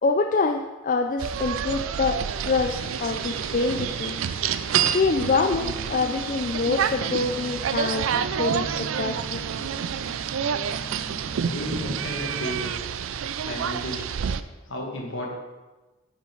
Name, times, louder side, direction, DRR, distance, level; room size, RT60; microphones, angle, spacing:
voice 1, 0.0-4.2 4.9-9.4, left 4 dB, 40° left, 4 dB, 0.3 m, -26 dB
sound 1, 1.2-14.4, right 8 dB, 70° right, 0.4 m, -28 dB
sound 2, 2.6-12.6, right 1 dB, 20° right, 2.1 m, -41 dB
voice 2, 11.4-12.8 13.4-14.2 14.7-15.3, equal, 65° left, -1 dB, 1.8 m, -33 dB
9.2 x 5.7 x 4.5 m, 1.2 s
head